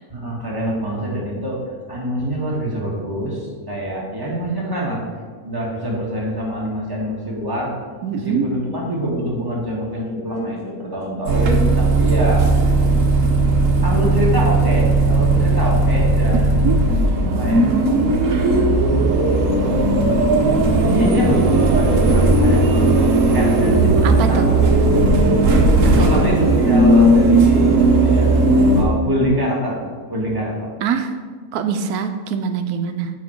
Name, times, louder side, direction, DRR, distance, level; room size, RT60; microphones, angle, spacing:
voice 1, 0.1-1.6 1.9-5.0 5.4-7.7 8.1-12.5 13.8-16.6 17.4-17.7 19.6-25.1 25.4-28.3 28.7-29.8 30.1-30.7, equal, 15° right, -5 dB, 1.5 m, -25 dB
voice 2, 8.0-8.5 16.3-16.4 16.6-16.8 23.9-24.5 25.8-26.1 30.8-31.1 31.5-33.1, right 7 dB, 80° right, 8 dB, 1.1 m, -23 dB
sound 1, 11.3-28.8, right 2 dB, 60° right, 1.2 m, -16 dB
7.2 x 5.2 x 4.5 m, 1.5 s
omnidirectional pair, 1.6 m